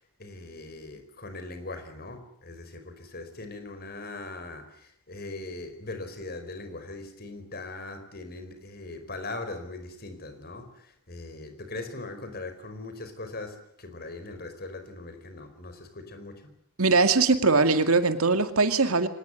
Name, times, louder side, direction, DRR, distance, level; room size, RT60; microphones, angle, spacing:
voice 1, 0.0-16.5, left 2 dB, 45° left, 8 dB, 4.7 m, -40 dB
voice 2, 16.8-19.1, right 3 dB, 70° right, 9 dB, 2.2 m, -21 dB
25.0 x 19.5 x 9.8 m, 0.67 s
head